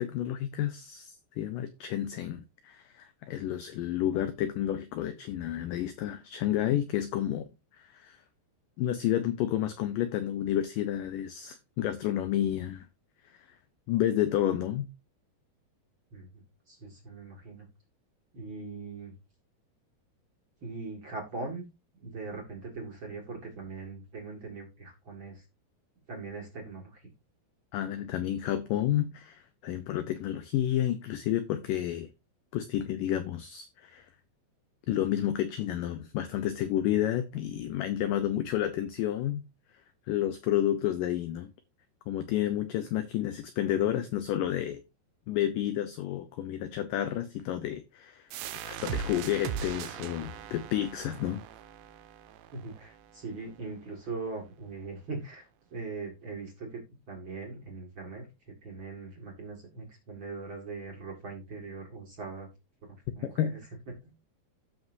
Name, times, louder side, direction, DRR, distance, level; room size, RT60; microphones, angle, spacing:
voice 1, 0.0-7.5 7.8-8.2 8.8-12.9 13.2-13.5 13.9-14.9 27.7-32.1 32.5-34.1 34.9-39.4 40.1-41.5 42.1-44.8 45.3-48.3 48.6-51.4 63.4-63.6, left 12 dB, 90° left, 1.9 m, -30 dB
voice 2, 16.1-17.7 18.3-19.1 20.6-21.6 22.0-25.4 26.1-27.1 52.5-56.8 57.1-58.3 58.6-62.5 62.8-63.6 64.0-64.1, right 3 dB, 40° right, 2.0 m, -41 dB
sound 1, 48.3-53.7, right 8 dB, 85° right, 3.0 m, -39 dB
15.0 x 6.1 x 2.7 m
omnidirectional pair, 4.8 m